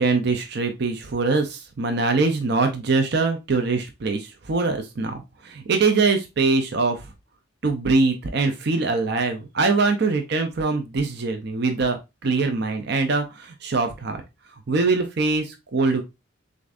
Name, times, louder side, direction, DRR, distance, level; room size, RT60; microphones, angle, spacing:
voice 1, 0.0-7.1 7.6-14.2 14.7-16.0, right 3 dB, 55° right, 5 dB, 0.5 m, -23 dB
6.5 x 2.6 x 2.4 m, 0.25 s
head